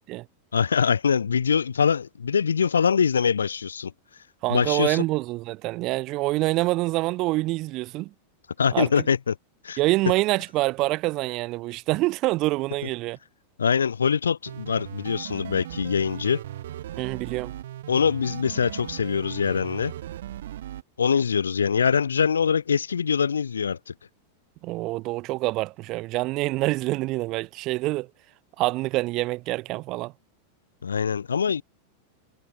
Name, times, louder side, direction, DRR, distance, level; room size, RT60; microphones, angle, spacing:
voice 1, 0.5-3.9 4.5-5.0 8.6-9.3 9.6-9.8 13.6-16.4 17.9-19.9 21.0-23.9 30.8-31.6, left 6 dB, 70° left, 1.0 m, -23 dB
voice 2, 4.4-8.1 8.7-8.9 9.8-13.2 17.0-17.5 24.6-28.1 28.6-30.1, right 20 dB, 40° right, 0.3 m, -26 dB
sound 1, 14.5-20.8, right 12 dB, 60° right, 2.0 m, -38 dB
figure-of-eight pair, 90°, 0 cm